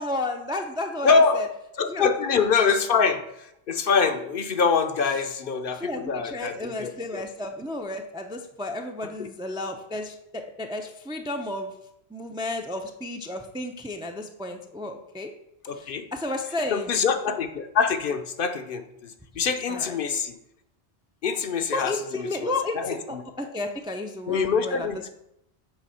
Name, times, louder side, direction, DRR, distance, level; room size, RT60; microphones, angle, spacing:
voice 1, 0.0-1.5 1.9-2.0 5.7-11.7 12.1-15.3 15.7-16.9 19.7-19.9 21.7-24.9, left 2 dB, 10° right, 4 dB, 0.3 m, -32 dB
voice 2, 1.0-1.4 1.8-7.2 9.2-9.3 15.7-16.1 16.7-20.4 21.2-23.2 24.3-25.1, left 5 dB, 60° left, 7 dB, 0.7 m, -25 dB
8.0 x 3.6 x 5.5 m, 0.80 s
omnidirectional pair, 1.1 m